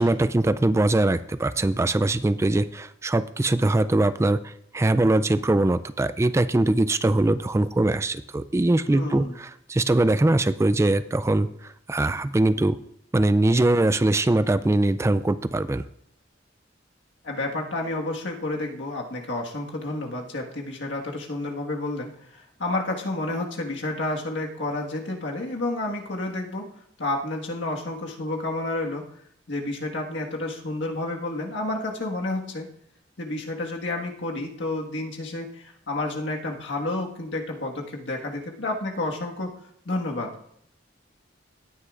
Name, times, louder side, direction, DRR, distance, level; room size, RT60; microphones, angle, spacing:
voice 1, 0.0-12.8 13.1-15.8, right 2 dB, 15° right, 13 dB, 0.3 m, -22 dB
voice 2, 8.9-9.3 17.2-26.7 27.0-29.0 29.5-32.7 33.2-39.6 39.8-40.3, left 2 dB, 75° left, 1 dB, 1.6 m, -30 dB
17.5 x 9.7 x 2.5 m, 0.72 s
head